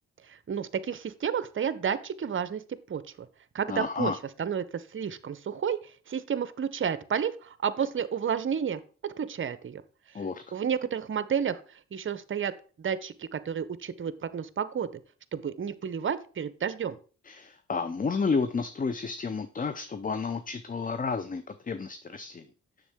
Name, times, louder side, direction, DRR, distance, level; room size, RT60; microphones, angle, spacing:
voice 1, 0.2-2.6 2.9-3.3 3.5-4.1 4.4-5.8 6.1-9.8 10.5-12.5 12.8-15.0 15.3-17.0, right 7 dB, 40° right, 14 dB, 0.7 m, -31 dB
voice 2, 3.7-4.2 10.1-10.4 17.3-22.4, left 5 dB, 25° left, 11 dB, 0.6 m, -31 dB
7.0 x 6.5 x 3.6 m, 0.38 s
supercardioid pair, 50°, 33 cm